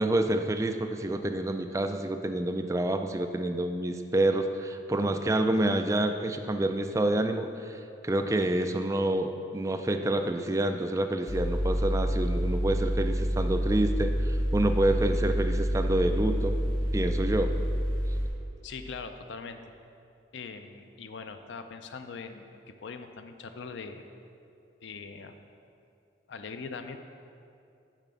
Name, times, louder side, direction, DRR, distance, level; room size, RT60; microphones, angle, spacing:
voice 1, 0.0-16.6 16.9-17.5, right 1 dB, 15° right, 6 dB, 0.3 m, -28 dB
Mechanical fan, 11.3-18.2, equal, 25° left, 1.4 m, -28 dB
voice 2, 18.6-19.6 20.3-24.0 24.8-25.4 26.3-27.0, left 5 dB, 70° left, 8 dB, 0.5 m, -41 dB
7.2 x 5.0 x 6.8 m, 2.6 s
head